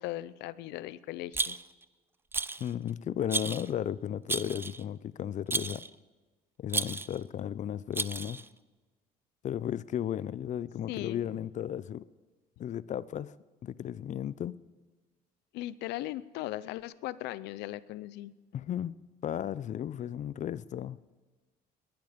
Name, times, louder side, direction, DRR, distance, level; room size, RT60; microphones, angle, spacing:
voice 1, 0.0-1.6 10.9-11.2 15.5-18.3, left 15 dB, 90° left, 18 dB, 0.6 m, -38 dB
Rattle, 1.3-1.8 2.3-2.7 3.3-3.7 4.3-4.8 5.5-5.9 6.7-7.2 7.9-8.5, right 3 dB, 15° right, 0.4 m, -33 dB
voice 2, 2.6-5.8 6.6-8.4 9.4-12.0 12.6-13.4 13.6-14.6 18.5-18.9 19.2-21.0, left 10 dB, 45° left, 19 dB, 0.5 m, -34 dB
19.0 x 12.0 x 5.1 m, 1.4 s
cardioid pair, 110°, 17 cm